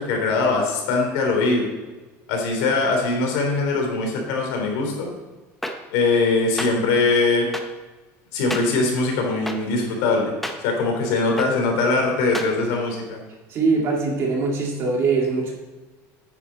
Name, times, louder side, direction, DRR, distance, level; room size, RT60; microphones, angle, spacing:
voice 1, 0.0-1.7 2.3-5.1 5.9-7.5 8.3-10.3 10.6-13.2, left 3 dB, 90° left, 1 dB, 3.3 m, -21 dB
sound 1, 5.6-5.7 6.6-6.7 7.5-7.6 8.5-8.6 9.5-9.6 10.4-10.6 11.4-11.5 12.3-12.5, left 1 dB, 5° left, 0.7 m, -29 dB
voice 2, 13.5-15.5, right 4 dB, 40° right, -1 dB, 2.4 m, -22 dB
9.7 x 9.2 x 4.2 m, 1.2 s
cardioid pair, 175°, 7 cm